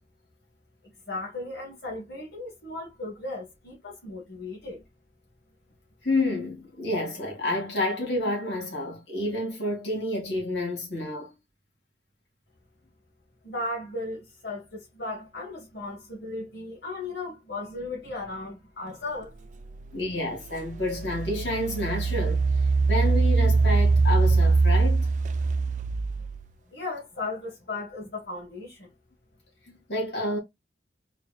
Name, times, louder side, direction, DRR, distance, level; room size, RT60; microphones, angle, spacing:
voice 1, 1.1-4.8 13.4-19.3 26.7-28.9, left 2 dB, 65° left, 1.7 m, -36 dB
voice 2, 6.0-11.3 19.9-22.4 22.9-25.1 29.7-30.4, left 1 dB, 80° left, 2.3 m, -29 dB
Engine, 19.8-19.9 20.5-26.5, right 3 dB, 45° right, 0.3 m, -23 dB
4.2 x 3.2 x 2.3 m
head